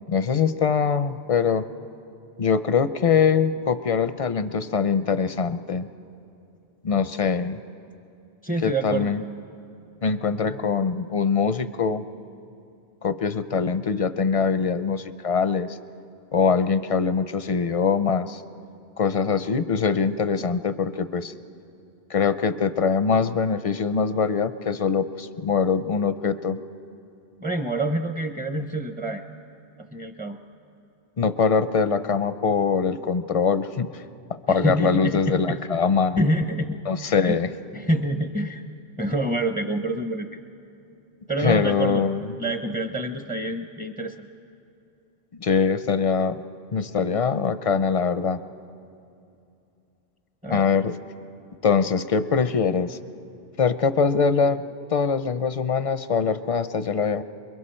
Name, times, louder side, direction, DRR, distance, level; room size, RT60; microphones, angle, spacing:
voice 1, 0.1-1.7 2.4-5.9 6.8-7.6 8.6-9.2 10.0-12.0 13.0-15.8 16.3-18.4 19.0-21.3 22.1-26.6 31.2-34.0 34.5-36.2 36.9-37.5 41.4-42.3 45.3-46.4 46.7-48.4 50.5-50.9 51.6-53.0 53.6-54.6 54.9-57.2, left 5 dB, 45° left, 12 dB, 0.5 m, -23 dB
voice 2, 8.4-9.1 27.4-29.2 29.8-30.4 34.5-35.6 36.2-37.4 37.7-38.6 39.0-40.4 41.3-42.1 42.4-44.3 50.4-50.7, right 1 dB, 10° right, 6 dB, 0.5 m, -27 dB
28.5 x 22.0 x 4.4 m, 2.7 s
omnidirectional pair, 1.1 m